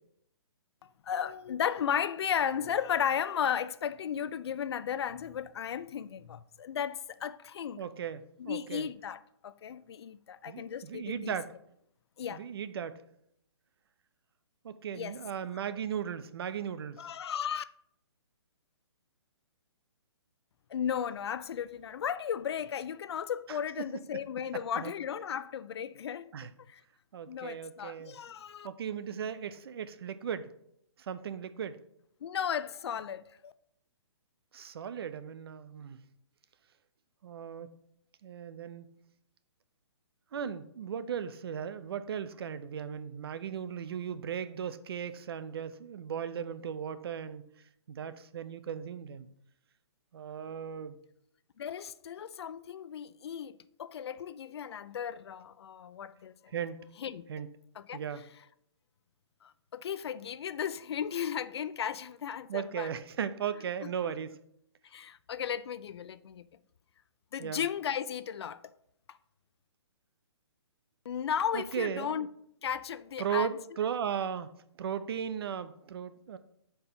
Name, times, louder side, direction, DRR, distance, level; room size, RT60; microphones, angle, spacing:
voice 1, 1.0-7.9 8.4-11.3 12.2-12.4 14.9-15.2 17.0-17.6 20.7-26.3 26.7-26.8 27.3-28.7 32.2-33.5 51.6-56.3 57.0-57.2 57.8-58.0 59.4-62.9 64.9-66.5 67.3-68.6 71.1-72.3 72.6-73.5, left 8 dB, 65° left, 0.4 m, -35 dB
voice 2, 7.8-8.9 10.5-11.5 12.3-13.0 14.6-17.1 23.5-24.0 24.7-24.9 26.3-26.5 27.1-28.2 28.6-30.5 31.0-31.8 34.5-36.0 37.2-37.7 38.2-38.9 40.3-47.5 47.9-49.3 50.1-51.0 56.5-56.8 57.3-57.5 57.9-58.3 62.5-64.4 67.4-67.6 71.5-72.2 73.2-76.4, right 8 dB, 55° right, 0.5 m, -37 dB
5.3 x 4.4 x 4.4 m
hypercardioid pair, 160°, 15 cm